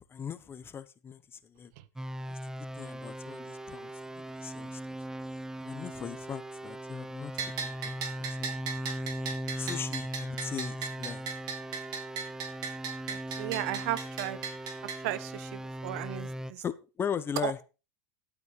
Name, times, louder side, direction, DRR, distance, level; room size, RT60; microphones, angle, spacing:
voice 1, 0.1-1.7 2.3-3.9 4.1-4.8 5.6-7.3 7.6-8.6 9.6-11.3 16.6-17.6, left 7 dB, 25° left, 1.1 m, -39 dB
sound 1, 2.0-16.5, equal, 5° right, 0.6 m, -39 dB
Bell, 7.4-15.0, right 6 dB, 45° right, 4.1 m, -38 dB
voice 2, 13.1-14.4 15.0-16.6 17.4-17.5, right 14 dB, 65° right, 1.2 m, -35 dB
12.5 x 8.7 x 5.0 m
supercardioid pair, 115°, 9 cm